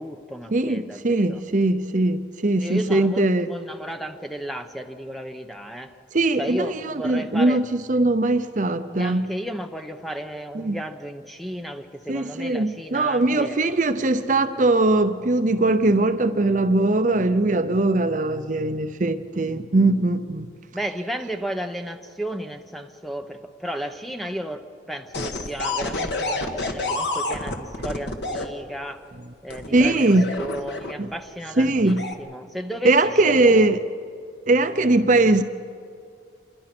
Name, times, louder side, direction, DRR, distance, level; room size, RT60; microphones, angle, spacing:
voice 1, 0.0-1.4 2.6-5.9 6.4-7.6 8.9-13.6 20.7-29.0 29.4-29.9 30.4-32.9 33.3-33.7, equal, ahead, 6 dB, 0.9 m, -33 dB
voice 2, 0.5-3.5 6.1-9.3 10.5-10.8 12.1-20.5 27.8-27.9 29.2-29.3 29.7-30.3 31.0-31.1 31.6-32.1 32.8-33.8 34.5-35.4, right 2 dB, 40° right, 10 dB, 0.7 m, -21 dB
sound 1, 25.1-28.5 29.5-31.1 31.8-32.1, left 2 dB, 65° left, 1.8 m, -28 dB
27.0 x 22.0 x 6.1 m, 2.4 s
head